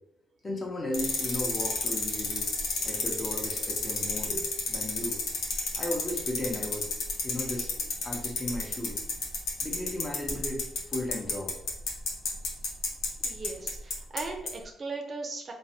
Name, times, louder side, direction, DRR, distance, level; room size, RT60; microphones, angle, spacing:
voice 1, 0.4-2.5 2.8-5.2 5.7-6.9 7.2-7.7 8.0-9.0 9.6-11.5, left 1 dB, 25° left, 0 dB, 0.8 m, -35 dB
sound 1, 0.9-14.2 14.5-14.6, left 4 dB, 90° left, 0.6 m, -30 dB
voice 2, 13.2-15.5, right 3 dB, 40° right, 2 dB, 0.5 m, -38 dB
3.2 x 2.1 x 2.7 m, 0.79 s
cardioid pair, 90°, 0 cm